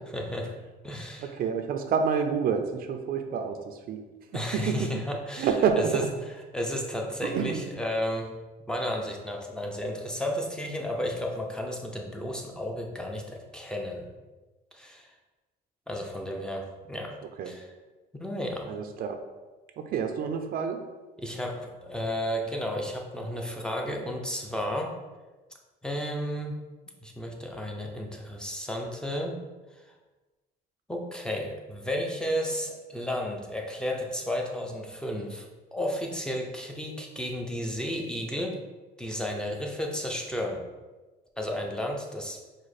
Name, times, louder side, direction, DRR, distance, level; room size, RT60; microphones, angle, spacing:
voice 1, 0.1-0.5 0.8-1.3 4.3-6.1 6.5-8.3 8.7-14.1 14.7-15.1 15.9-17.2 17.5-17.7 18.1-18.7 21.2-25.0 25.8-26.6 27.0-29.4 30.9-38.6 39.0-40.6 41.4-42.4, equal, 5° left, 1 dB, 0.6 m, -33 dB
voice 2, 1.2-4.0 4.5-4.8 5.4-6.1 7.2-7.7 17.4-17.5 18.7-19.2 19.8-20.8, right 6 dB, 60° right, 6 dB, 0.5 m, -28 dB
4.9 x 2.1 x 4.1 m, 1.2 s
cardioid pair, 110°, 17 cm